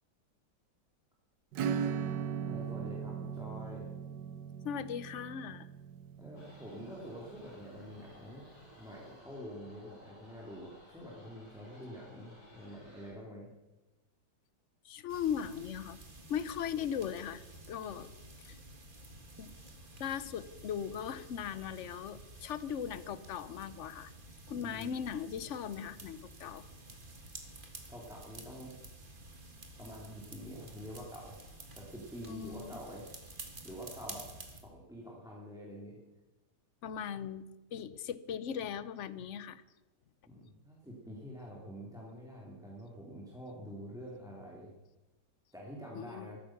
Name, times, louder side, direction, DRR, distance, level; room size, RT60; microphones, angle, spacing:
Acoustic guitar / Strum, 1.5-7.8, right 7 dB, 85° right, 1.4 m, -38 dB
voice 1, 2.4-3.9 6.2-8.4 8.8-13.5 24.5-24.9 27.9-28.7 29.8-31.4 31.8-33.1 33.6-34.3 34.6-36.0 40.2-44.8 45.5-46.4, equal, ahead, -3 dB, 2.5 m, -47 dB
voice 2, 4.6-5.7 14.8-16.0 16.3-18.1 18.4-18.6 19.4-19.5 20.0-24.1 24.5-26.7 32.2-32.8 36.8-37.4 37.7-39.6 45.9-46.4, left 8 dB, 55° left, 15 dB, 0.9 m, -38 dB
sound 1, 6.4-13.1, equal, 40° left, 5.7 m, -57 dB
sound 2, 15.1-34.6, right 2 dB, 30° right, 2.0 m, -51 dB
14.5 x 13.5 x 5.9 m, 1.0 s
omnidirectional pair, 1.9 m